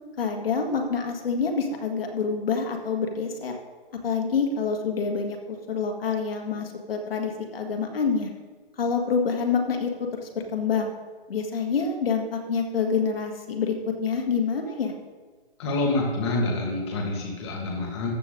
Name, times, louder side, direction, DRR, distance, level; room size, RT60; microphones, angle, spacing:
voice 1, 0.2-3.6 4.0-8.3 8.8-9.9 10.2-10.9 11.3-14.9, left 5 dB, 65° left, 3 dB, 2.1 m, -27 dB
voice 2, 15.6-18.1, left 2 dB, 25° left, -1 dB, 2.2 m, -27 dB
14.0 x 7.8 x 3.9 m, 1.4 s
hypercardioid pair, 180°, 31 cm